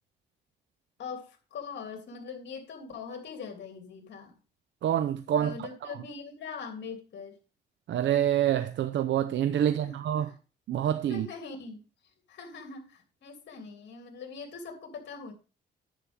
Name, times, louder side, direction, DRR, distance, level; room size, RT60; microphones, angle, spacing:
voice 1, 1.0-4.4 5.3-7.4 9.6-10.3 11.1-11.9 12.3-15.3, left 5 dB, 65° left, 3.1 m, -42 dB
voice 2, 4.8-5.7 7.9-10.3 10.7-11.3, right 10 dB, 70° right, 0.7 m, -27 dB
10.5 x 8.3 x 3.5 m
cardioid pair, 90°, 20 cm